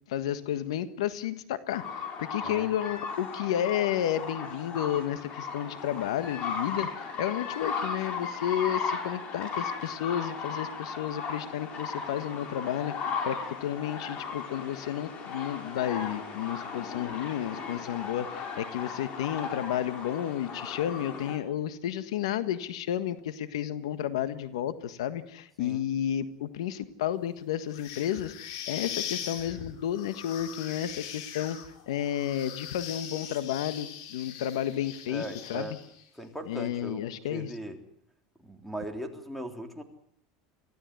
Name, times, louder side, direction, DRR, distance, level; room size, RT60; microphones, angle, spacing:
voice 1, 0.1-31.6 31.9-35.8 36.4-37.6, left 11 dB, 85° left, 12 dB, 1.5 m, -32 dB
sound 1, 1.7-21.4, left 5 dB, 40° left, 5.8 m, -36 dB
voice 2, 2.4-2.7 25.6-25.8 35.1-35.8 36.2-37.8 38.4-39.8, right 1 dB, ahead, 5 dB, 3.5 m, -39 dB
sound 2, 27.7-36.0, left 9 dB, 70° left, 4.2 m, -41 dB
24.5 x 16.0 x 9.5 m, 0.71 s
supercardioid pair, 125°, 3 cm